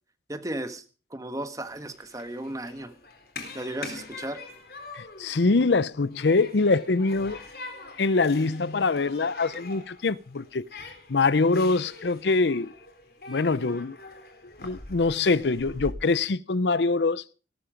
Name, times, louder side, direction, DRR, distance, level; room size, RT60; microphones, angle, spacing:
voice 1, 0.3-0.8 1.1-2.9 3.5-4.4, right 1 dB, 20° right, 1.5 m, -35 dB
Human group actions, 1.6-15.9, left 3 dB, 60° left, 3.9 m, -44 dB
voice 2, 4.9-7.4 8.0-12.7 13.3-14.0 14.6-17.2, left 3 dB, 85° left, 0.7 m, -24 dB
17.5 x 13.0 x 5.2 m
head